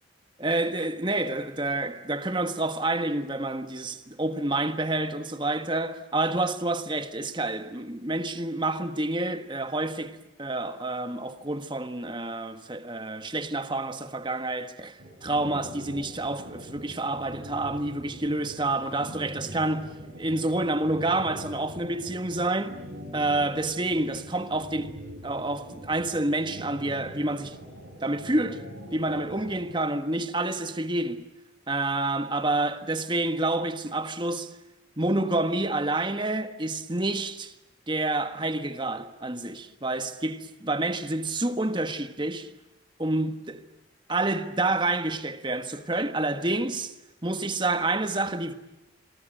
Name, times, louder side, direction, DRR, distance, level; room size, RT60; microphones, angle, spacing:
voice 1, 0.4-22.8 23.1-27.6 28.0-28.6 28.9-31.3 31.7-34.6 35.0-37.5 37.9-42.5 43.0-43.6 44.1-46.9 47.2-48.5, right 2 dB, 25° right, 1.5 m, -28 dB
sound 1, 15.0-29.7, equal, 90° right, 7.6 m, -42 dB
27.5 x 23.0 x 8.9 m
head